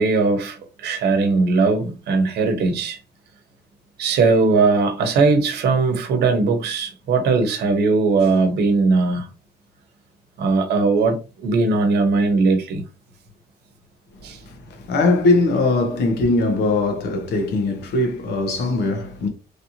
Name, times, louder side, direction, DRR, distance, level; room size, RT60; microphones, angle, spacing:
voice 1, 0.0-3.0 4.0-9.3 10.4-12.8 14.2-14.4, right 3 dB, 80° right, 0.9 m, -19 dB
voice 2, 14.5-19.3, left 2 dB, 80° left, 1.1 m, -20 dB
3.2 x 2.8 x 2.7 m
cardioid pair, 110°, 17 cm